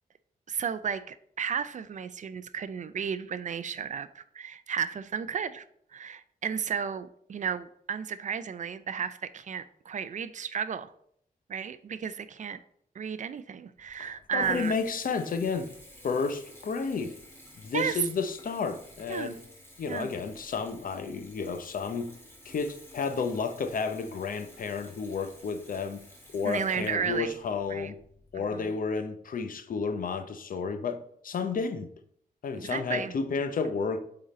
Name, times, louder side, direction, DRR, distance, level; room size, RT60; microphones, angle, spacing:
voice 1, 0.5-5.6 5.9-10.9 11.5-12.6 12.9-14.7 17.7-18.0 19.1-19.3 19.9-20.1 26.4-27.3 27.7-27.9 28.3-28.6 32.6-33.1, right 7 dB, 55° right, 0.4 m, -33 dB
Water tap faucet / Bathtub (filling or washing) / Trickle dribble, 13.8-28.6, left 1 dB, 15° left, 1.9 m, -52 dB
voice 2, 14.0-15.7 16.0-17.2 17.6-19.4 19.8-22.1 22.4-26.0 26.3-28.0 28.3-31.9 32.4-34.0, left 5 dB, 65° left, 0.7 m, -31 dB
8.7 x 3.9 x 4.2 m
wide cardioid pair, 145°, 15 cm